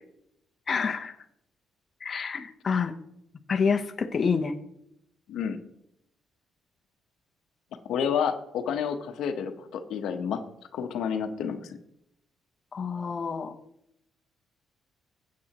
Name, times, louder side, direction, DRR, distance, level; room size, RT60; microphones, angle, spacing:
voice 1, 0.7-1.1 2.0-2.9 3.5-4.6 12.7-13.5, left 5 dB, 40° left, 5 dB, 0.9 m, -27 dB
voice 2, 7.8-10.4 10.7-11.7, left 7 dB, 80° left, 7 dB, 1.0 m, -30 dB
15.5 x 8.5 x 3.0 m, 0.79 s
cardioid pair, 90°, 0 cm